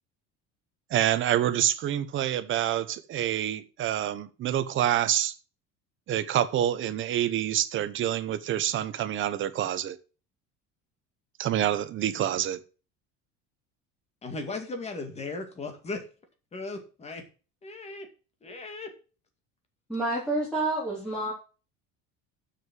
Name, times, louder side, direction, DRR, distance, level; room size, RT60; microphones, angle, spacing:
voice 1, 0.9-5.3 6.1-10.0 11.4-12.6, right 11 dB, 40° right, 1.0 m, -27 dB
voice 2, 14.2-16.0 16.5-17.2 17.6-18.1 18.4-18.9, left 3 dB, 20° left, 2.2 m, -37 dB
voice 3, 19.9-21.3, right 2 dB, ahead, 3.4 m, -28 dB
7.6 x 6.5 x 7.7 m
cardioid pair, 160°, 32 cm